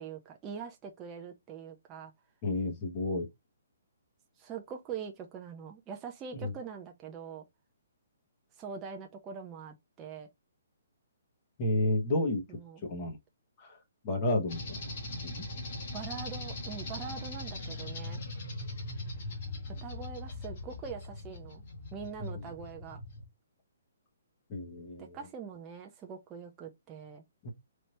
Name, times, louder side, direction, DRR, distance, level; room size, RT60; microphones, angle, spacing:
voice 1, 0.0-2.1 4.4-7.4 8.6-10.3 12.5-12.9 15.9-18.2 19.8-21.6 21.9-23.0 25.0-27.2, right 6 dB, 15° right, 0.4 m, -43 dB
voice 2, 2.4-3.2 6.4-6.5 11.6-12.4 12.9-13.2 13.6-13.8 14.0-15.4 24.5-25.2 27.4-27.5, left 2 dB, 20° left, 1.1 m, -31 dB
sound 1, 14.5-23.2, left 2 dB, 40° left, 1.4 m, -40 dB
3.3 x 2.7 x 4.1 m
hypercardioid pair, 170°, 0 cm